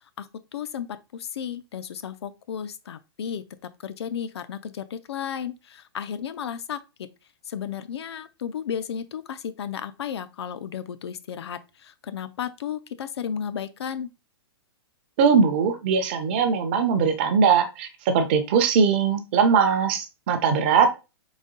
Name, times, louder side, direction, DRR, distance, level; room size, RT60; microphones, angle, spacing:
voice 1, 0.5-0.9 1.1-3.4 3.8-6.8 7.5-14.1, left 8 dB, 80° left, 0.5 m, -33 dB
voice 2, 15.2-20.9, right 6 dB, 25° right, 0.6 m, -20 dB
4.0 x 3.5 x 3.8 m
hypercardioid pair, 180°, 14 cm